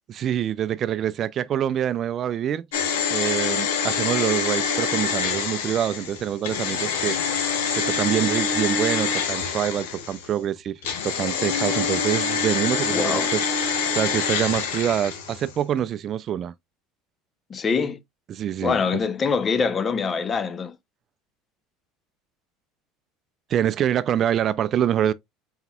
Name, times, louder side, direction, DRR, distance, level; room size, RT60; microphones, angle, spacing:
voice 1, 0.1-2.6 3.1-7.5 7.7-13.4 13.7-16.5 18.3-18.8 23.5-25.1, right 10 dB, 45° right, 0.3 m, -25 dB
sound 1, 2.7-10.3 10.8-15.5 15.8-15.9, left 6 dB, 80° left, 1.0 m, -26 dB
voice 2, 12.9-13.3 17.5-18.0 18.6-20.8, left 5 dB, 35° left, 0.6 m, -24 dB
4.4 x 4.0 x 2.2 m
hypercardioid pair, 90°, 0 cm